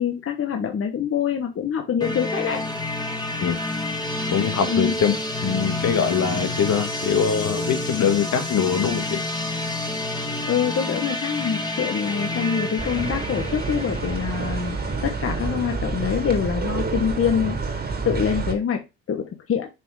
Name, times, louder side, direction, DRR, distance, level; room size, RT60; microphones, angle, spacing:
voice 1, 0.0-2.6 4.7-4.9 10.5-14.8 15.0-17.8 18.0-19.7, left 7 dB, 45° left, 4 dB, 1.0 m, -25 dB
sound 1, 2.0-15.7, left 2 dB, 15° left, 1.7 m, -29 dB
voice 2, 4.3-5.1 5.4-9.2, left 7 dB, 65° left, 7 dB, 1.5 m, -22 dB
sound 2, 12.8-18.5, right 4 dB, 30° right, 2.0 m, -28 dB
5.9 x 3.6 x 4.7 m, 0.25 s
cardioid pair, 90°, 30 cm